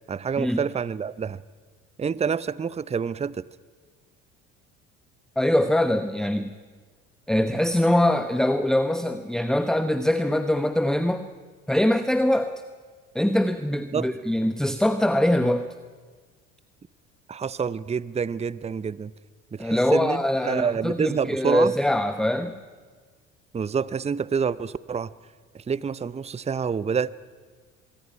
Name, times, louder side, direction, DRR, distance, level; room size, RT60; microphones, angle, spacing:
voice 1, 0.1-1.4 2.0-3.4 13.9-14.1 17.3-19.1 19.5-21.7 23.5-25.1 25.5-27.1, right 6 dB, 20° right, 19 dB, 0.7 m, -27 dB
voice 2, 5.4-6.5 7.3-11.3 11.7-12.6 13.1-15.7 19.6-22.6, left 1 dB, ahead, 10 dB, 1.0 m, -23 dB
24.5 x 23.0 x 5.8 m, 1.5 s
hypercardioid pair, 60°, 35 cm